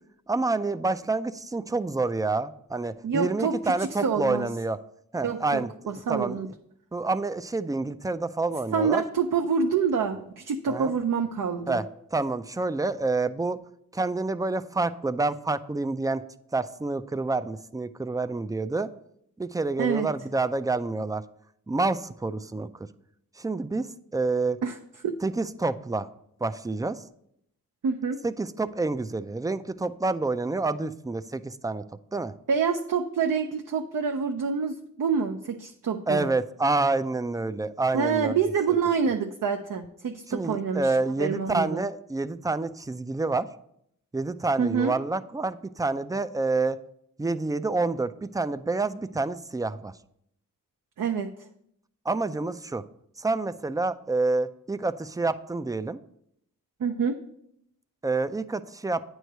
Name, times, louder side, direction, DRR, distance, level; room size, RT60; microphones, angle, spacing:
voice 1, 0.3-4.8 5.1-5.7 6.1-6.4 6.9-9.0 10.7-10.9 11.7-11.8 12.1-13.6 13.9-16.2 16.5-18.9 19.4-21.2 21.7-22.9 23.4-24.6 25.2-26.1 26.4-27.0 28.2-31.8 32.1-32.3 36.1-38.4 40.3-43.5 44.1-46.8 47.2-49.9 52.1-52.8 53.2-56.0 58.0-59.0, right 3 dB, 10° right, 12 dB, 0.3 m, -28 dB
voice 2, 3.0-4.5 5.2-6.5 8.7-11.8 19.8-20.1 24.6-24.8 27.8-28.2 32.5-36.3 37.9-40.9 41.2-41.8 44.6-44.9 51.0-51.3 56.8-57.2, right 6 dB, 65° right, 4 dB, 0.6 m, -27 dB
9.1 x 3.2 x 6.5 m, 0.73 s
cardioid pair, 45°, 34 cm